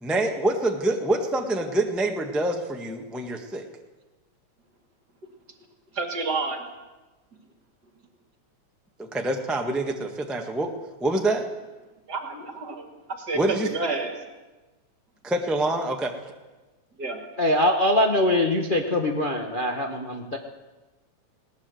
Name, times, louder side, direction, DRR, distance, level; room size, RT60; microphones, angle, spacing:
voice 1, 0.0-3.6 9.0-10.7 11.0-11.5 13.3-13.7 15.2-16.1, right 2 dB, ahead, 3 dB, 1.0 m, -26 dB
voice 2, 5.9-6.6 12.1-12.8 13.1-14.2 17.0-17.3, right 3 dB, 35° right, 4 dB, 2.5 m, -29 dB
voice 3, 17.4-20.4, left 1 dB, 70° left, 2 dB, 0.4 m, -23 dB
20.0 x 18.5 x 7.9 m, 1.2 s
omnidirectional pair, 3.3 m